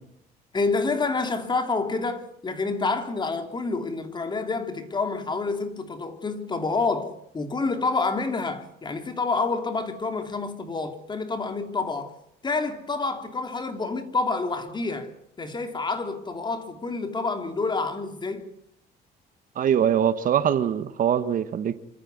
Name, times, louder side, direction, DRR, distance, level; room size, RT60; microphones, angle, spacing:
voice 1, 0.5-12.1 12.4-15.1 15.4-18.5, left 3 dB, 25° left, 3.0 m, -28 dB
voice 2, 19.5-21.9, right 9 dB, 55° right, 1.5 m, -23 dB
27.0 x 13.5 x 9.5 m
cardioid pair, 110°, 17 cm